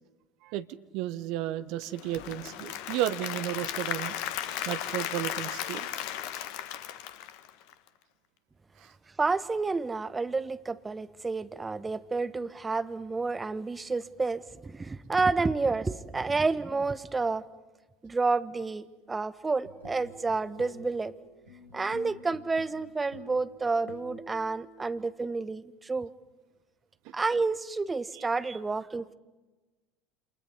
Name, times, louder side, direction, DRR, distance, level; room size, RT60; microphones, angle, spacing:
voice 1, 0.4-4.2 4.6-5.9 28.1-28.2, right 13 dB, 55° right, 13 dB, 1.1 m, -33 dB
Applause / Crowd, 1.8-7.9, left 11 dB, 55° left, 1.4 m, -35 dB
voice 2, 9.2-17.4 18.0-21.1 21.7-26.1 27.1-29.1, right 3 dB, 15° right, 14 dB, 1.0 m, -30 dB
sound 1, 19.4-25.0, left 1 dB, 80° right, 3.1 m, -49 dB
29.0 x 27.5 x 5.5 m, 1.1 s
figure-of-eight pair, 70°, 0 cm